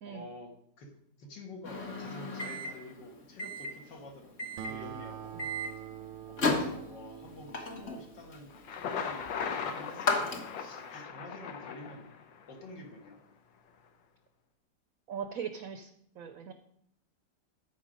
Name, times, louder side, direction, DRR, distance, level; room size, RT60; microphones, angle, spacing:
voice 1, 0.1-0.5 0.8-0.9 1.2-5.4 6.3-9.3 9.6-12.1 12.5-13.2, left 2 dB, 70° left, 1 dB, 2.3 m, -48 dB
Microwave oven, 1.6-10.9, left 2 dB, 40° left, 1.3 m, -36 dB
Acoustic guitar, 4.6-9.4, right 11 dB, 85° right, 1.4 m, -46 dB
Thunder, 8.5-12.5, left 6 dB, 90° left, 1.6 m, -38 dB
voice 2, 15.1-15.9 16.2-16.5, right 7 dB, 65° right, 8 dB, 0.9 m, -39 dB
13.5 x 4.6 x 5.1 m, 0.74 s
omnidirectional pair, 2.0 m